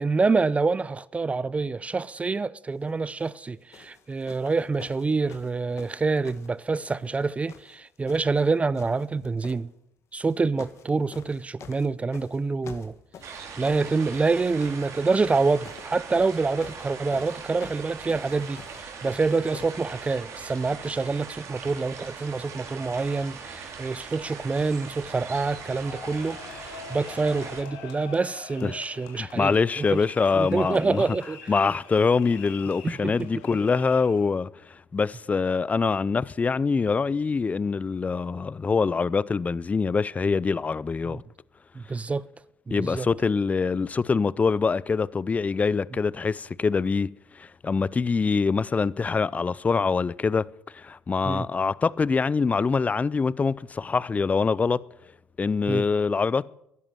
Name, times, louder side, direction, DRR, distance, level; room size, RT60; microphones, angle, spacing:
voice 1, 0.0-9.7 10.1-12.9 13.3-30.0 30.3-31.5 32.8-33.3 41.1-41.2 41.8-42.3 42.7-43.1 51.3-51.5 55.7-55.8, right 4 dB, 25° right, 0.5 m, -27 dB
sound 1, 3.1-3.3 3.7-7.2 7.5-8.5 8.7-9.6 10.2-10.9 11.1-19.8 20.6-20.7, left 7 dB, 55° left, 1.7 m, -48 dB
sound 2, 13.2-27.6, right 5 dB, 60° right, 3.6 m, -41 dB
sound 3, 25.3-34.3, left 7 dB, 85° left, 2.6 m, -45 dB
voice 2, 29.2-31.0 31.5-41.2 42.7-47.1 47.4-50.5 50.7-54.8 55.4-56.4, left 4 dB, 25° left, 0.5 m, -24 dB
14.0 x 11.0 x 7.6 m
supercardioid pair, 75°, 6 cm